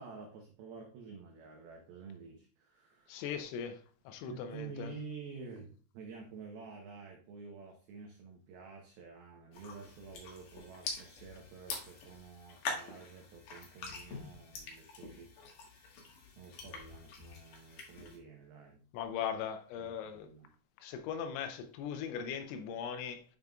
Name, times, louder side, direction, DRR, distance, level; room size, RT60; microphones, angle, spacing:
voice 1, 0.0-3.3 4.3-15.3 16.4-18.9 19.8-20.5, right 5 dB, 90° right, 2.1 m, -50 dB
voice 2, 3.1-3.8 4.1-4.9 18.9-20.3 20.8-23.2, left 8 dB, 80° left, 2.9 m, -39 dB
sound 1, 9.5-18.2, left 4 dB, 60° left, 2.3 m, -45 dB
9.4 x 5.2 x 2.3 m
omnidirectional pair, 5.7 m